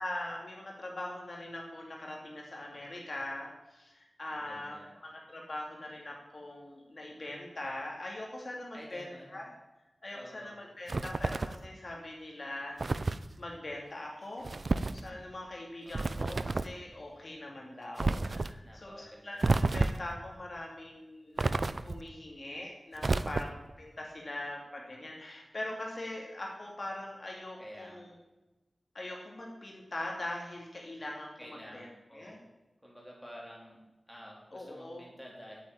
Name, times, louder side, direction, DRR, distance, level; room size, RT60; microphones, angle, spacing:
voice 1, 0.0-4.7 5.0-9.5 10.0-14.5 14.9-23.5 23.8-28.1 28.9-31.9 32.1-32.4 34.5-35.1, left 1 dB, 45° left, -1 dB, 2.7 m, -42 dB
voice 2, 4.3-4.9 8.7-9.3 10.1-10.6 15.8-16.4 18.6-19.4 23.0-23.4 27.6-28.1 31.4-32.4 32.8-33.8 34.1-35.6, equal, 5° right, -3 dB, 3.9 m, -50 dB
sound 1, 10.9-11.7 12.8-13.3 14.4-15.0 15.9-16.8 18.0-18.5 19.4-20.1 21.4-22.1 23.0-23.7, right 3 dB, 50° right, 0.5 m, -30 dB
9.0 x 8.5 x 9.0 m, 1.0 s
wide cardioid pair, 95°, 0 cm